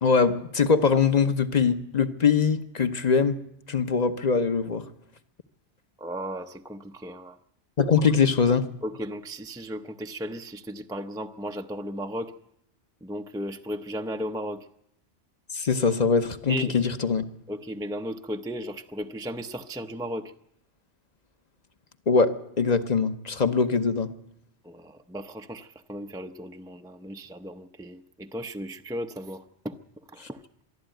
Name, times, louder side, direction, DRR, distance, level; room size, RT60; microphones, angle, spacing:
voice 1, 0.0-3.4 3.7-4.9 7.8-8.7 15.5-17.2 22.1-24.1 30.2-30.3, left 5 dB, 40° left, 1.1 m, -22 dB
voice 2, 6.0-7.4 8.0-8.1 8.8-12.3 13.0-14.7 16.5-16.8 17.5-20.3 24.6-29.8 30.1-30.4, equal, 5° right, 0.5 m, -35 dB
23.5 x 12.5 x 9.1 m
omnidirectional pair, 1.2 m